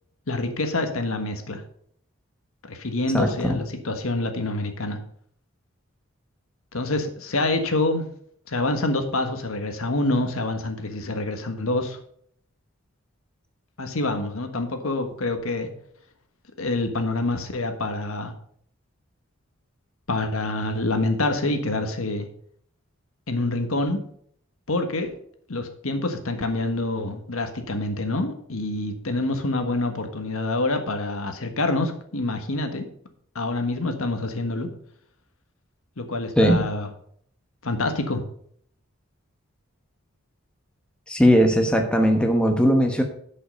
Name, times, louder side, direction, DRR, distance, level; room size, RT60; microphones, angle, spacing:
voice 1, 0.3-1.6 2.7-5.0 6.7-8.0 8.5-12.0 13.8-15.7 16.6-18.3 20.1-22.3 23.3-24.0 24.7-25.1 25.5-32.9 33.3-34.7 36.0-36.9 37.6-38.2, left 2 dB, 80° left, 6 dB, 1.5 m, -26 dB
voice 2, 3.1-3.6 36.4-36.6 41.1-43.0, equal, 5° left, 3 dB, 1.0 m, -19 dB
11.0 x 5.7 x 5.3 m, 0.63 s
head